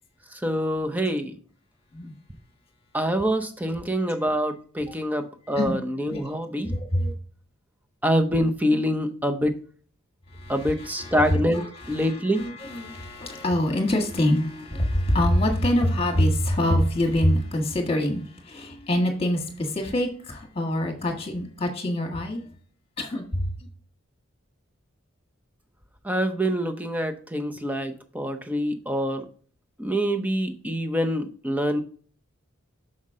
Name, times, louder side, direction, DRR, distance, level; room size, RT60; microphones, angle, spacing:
voice 1, 0.3-1.3 2.9-6.7 8.0-9.6 10.5-12.4 26.0-29.2 29.8-31.8, equal, 10° right, 0.6 m, -25 dB
voice 2, 6.6-7.1 10.3-22.5 23.0-23.5, left 1 dB, 25° left, 1.5 m, -25 dB
6.5 x 5.8 x 3.6 m
head